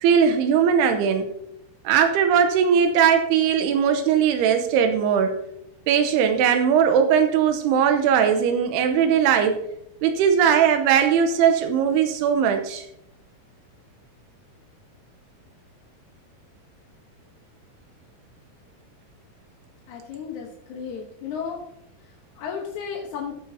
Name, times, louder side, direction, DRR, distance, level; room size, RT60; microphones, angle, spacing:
voice 1, 0.0-1.3 1.8-5.3 5.9-9.6 10.0-12.9, right 7 dB, 85° right, 6 dB, 2.8 m, -19 dB
voice 2, 19.9-21.6 22.0-23.3, left 6 dB, 65° left, 0 dB, 2.0 m, -34 dB
14.0 x 9.8 x 2.8 m, 0.78 s
omnidirectional pair, 4.6 m